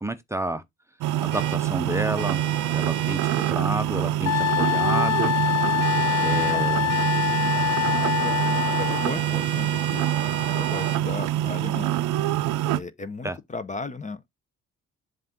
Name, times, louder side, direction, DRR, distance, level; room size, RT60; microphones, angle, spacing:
voice 1, 0.0-0.6 1.2-2.4 2.7-5.3 6.2-6.9 13.2-13.4, right 1 dB, 10° right, 0.7 m, -30 dB
sound 1, 1.0-12.8, right 13 dB, 85° right, 0.5 m, -25 dB
sound 2, 1.3-1.6 2.2-3.6 5.8-6.6 6.9-11.0, right 7 dB, 35° right, 0.9 m, -34 dB
Wind instrument woodwind instrument, 4.3-9.1, left 15 dB, 60° left, 0.4 m, -25 dB
voice 2, 7.8-10.1 10.5-12.0 12.6-14.3, left 3 dB, 25° left, 0.7 m, -36 dB
7.5 x 2.5 x 5.8 m
cardioid pair, 90°, 30 cm